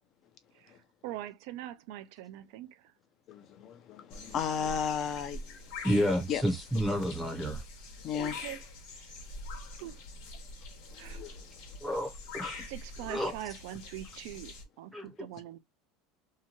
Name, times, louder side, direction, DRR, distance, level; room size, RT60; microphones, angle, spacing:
voice 1, 1.0-2.9 8.1-8.6 9.0-9.1 9.8-10.0 11.0-11.2 12.6-15.6, right 13 dB, 70° right, 0.4 m, -43 dB
voice 2, 3.3-5.5 6.3-6.4 8.0-8.4 10.9-11.5, left 7 dB, 50° left, 0.6 m, -34 dB
sound 1, 4.1-14.6, left 2 dB, 75° left, 1.1 m, -45 dB
voice 3, 5.8-7.6 11.8-12.6 13.1-13.3 14.9-15.1, equal, 5° right, 0.7 m, -30 dB
2.8 x 2.2 x 2.8 m
supercardioid pair, 110°, 0 cm